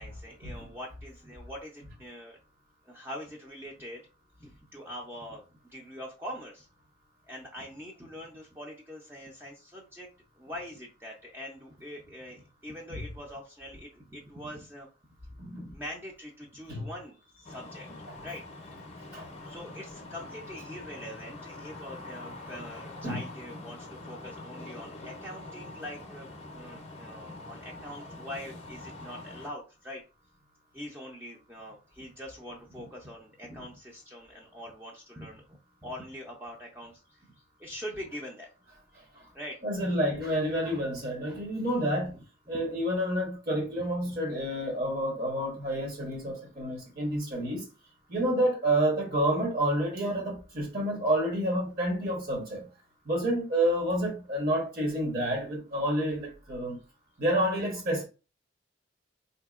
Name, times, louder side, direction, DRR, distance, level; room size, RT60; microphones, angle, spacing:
voice 1, 0.0-2.4 2.8-4.0 4.4-5.4 5.7-6.7 7.3-10.1 10.4-14.9 15.6-18.8 19.4-30.0 30.7-37.3 37.6-38.5 39.3-39.6 42.1-42.2 42.5-42.7, equal, 10° right, 0.4 m, -43 dB
voice 2, 15.4-15.7 16.7-16.8 19.1-19.3 23.0-23.2 39.1-39.3 39.6-42.1 42.5-47.6 48.1-52.6 53.0-56.8 57.2-58.0, right 1 dB, 50° right, 1.0 m, -29 dB
sound 1, 17.4-29.5, left 2 dB, 35° left, 0.6 m, -44 dB
4.2 x 2.7 x 2.4 m
head